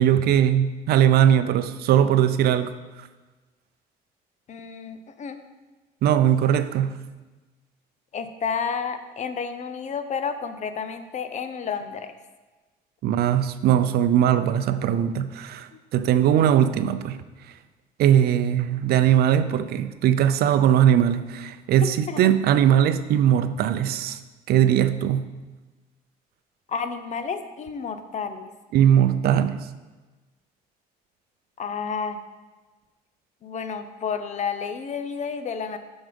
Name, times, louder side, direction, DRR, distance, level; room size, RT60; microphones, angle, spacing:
voice 1, 0.0-3.1 6.0-7.0 13.0-17.2 18.0-24.2 24.5-25.3 28.7-29.6, right 10 dB, 70° right, 11 dB, 0.5 m, -20 dB
voice 2, 4.5-5.4 8.1-12.1 15.7-15.8 22.1-22.2 26.7-28.5 31.6-32.2 33.4-35.8, left 6 dB, 45° left, 9 dB, 0.7 m, -31 dB
7.3 x 6.2 x 5.2 m, 1.2 s
cardioid pair, 110°, 17 cm